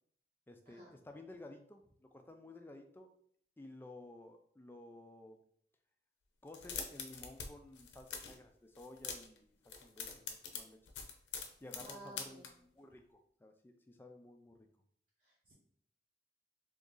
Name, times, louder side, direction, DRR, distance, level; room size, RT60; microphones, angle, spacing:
voice 1, 0.5-3.1 3.6-5.4 6.4-10.8 11.6-14.7, left 2 dB, 10° left, 5 dB, 0.3 m, -54 dB
sound 1, 6.5-7.5 7.7-8.4 8.8-9.4 9.7-12.5, left 6 dB, 85° left, 0.6 m, -44 dB
voice 2, 11.8-12.5 15.2-15.5, right 2 dB, 45° right, -7 dB, 0.9 m, -54 dB
2.9 x 2.6 x 3.7 m, 0.64 s
head